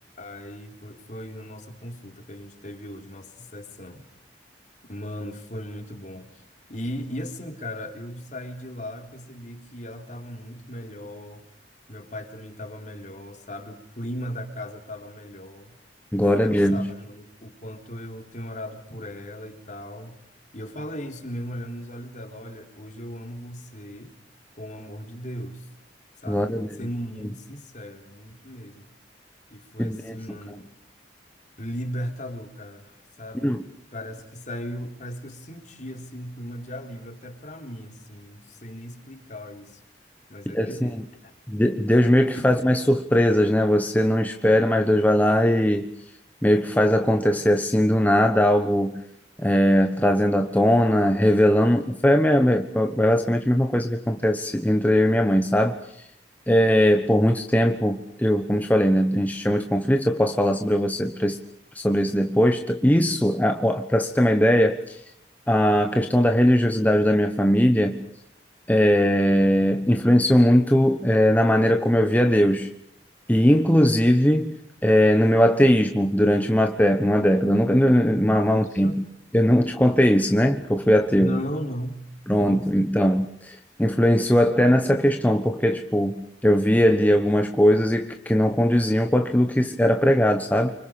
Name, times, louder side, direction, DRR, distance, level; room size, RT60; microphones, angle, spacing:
voice 1, 0.2-4.1 4.9-6.3 6.7-11.5 11.9-15.8 16.2-20.2 20.5-24.1 24.6-25.7 26.2-28.9 29.5-30.7 31.6-33.6 33.9-39.8 40.3-41.3 42.4-42.7 78.4-79.0 81.2-82.0 82.4-82.9, equal, 45° left, 4 dB, 3.7 m, -37 dB
voice 2, 16.1-16.9 26.3-26.9 29.8-30.4 33.4-33.6 40.5-41.0 41.5-45.9 46.4-49.0 49.4-55.8 56.5-61.4 61.7-65.0 65.5-68.1 68.7-72.7 73.3-74.5 74.8-79.0 79.3-81.4 82.3-90.7, equal, 10° left, 5 dB, 1.2 m, -20 dB
29.5 x 25.5 x 5.2 m, 0.74 s
head